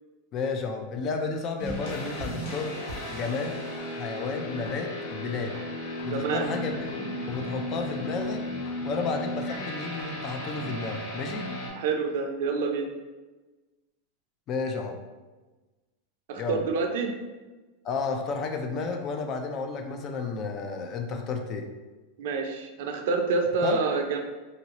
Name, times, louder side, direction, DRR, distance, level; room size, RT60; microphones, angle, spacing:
voice 1, 0.3-2.8 3.1-3.6 3.9-5.6 6.0-8.4 8.8-11.5 14.5-15.0 16.4-16.7 17.8-21.7 23.6-23.8, left 4 dB, 35° left, 5 dB, 0.4 m, -32 dB
sound 1, 1.6-11.7, left 1 dB, 70° left, 1.0 m, -35 dB
voice 2, 6.1-6.4 11.8-12.9 16.3-17.2 22.2-24.2, right 4 dB, 70° right, 4 dB, 0.5 m, -27 dB
3.0 x 2.6 x 2.9 m, 1.2 s
supercardioid pair, 135°, 0 cm